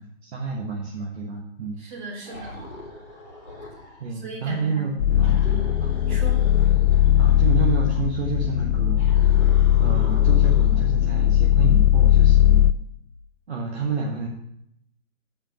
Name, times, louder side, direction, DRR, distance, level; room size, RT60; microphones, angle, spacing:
voice 1, 0.2-1.8 4.0-6.0 7.2-9.4 9.8-12.7 13.5-14.3, right 4 dB, 55° right, -1 dB, 1.4 m, -30 dB
voice 2, 1.8-2.6 4.2-5.7 6.0-6.4, right 2 dB, 35° right, -3 dB, 2.9 m, -37 dB
sound 1, 2.2-4.1 5.2-8.0 9.0-10.9, left 2 dB, 5° right, 0.5 m, -41 dB
sound 2, 5.0-12.7, left 12 dB, 80° left, 0.5 m, -18 dB
8.0 x 5.0 x 6.3 m, 0.76 s
hypercardioid pair, 150°, 39 cm